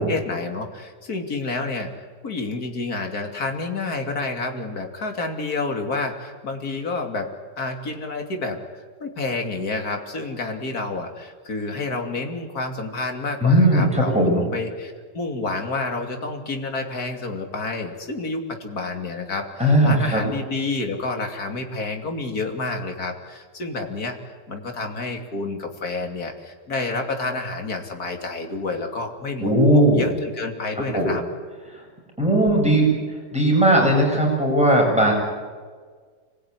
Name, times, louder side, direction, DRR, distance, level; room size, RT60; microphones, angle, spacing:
voice 1, 0.0-7.3 7.6-8.6 9.0-24.2 24.5-31.2, left 3 dB, 65° left, 4 dB, 3.2 m, -29 dB
voice 2, 13.4-14.4 19.6-20.2 29.4-30.1 30.9-31.1 32.2-33.0 33.3-35.1, right 1 dB, 5° right, -1 dB, 7.8 m, -17 dB
26.5 x 20.5 x 9.9 m, 1.5 s
omnidirectional pair, 1.8 m